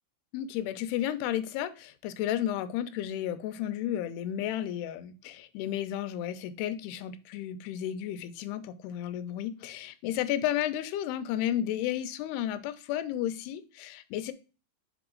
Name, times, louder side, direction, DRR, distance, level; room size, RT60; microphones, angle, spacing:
voice 1, 0.3-14.3, left 11 dB, 85° left, 2.7 m, -33 dB
6.0 x 4.8 x 3.7 m
omnidirectional pair, 4.6 m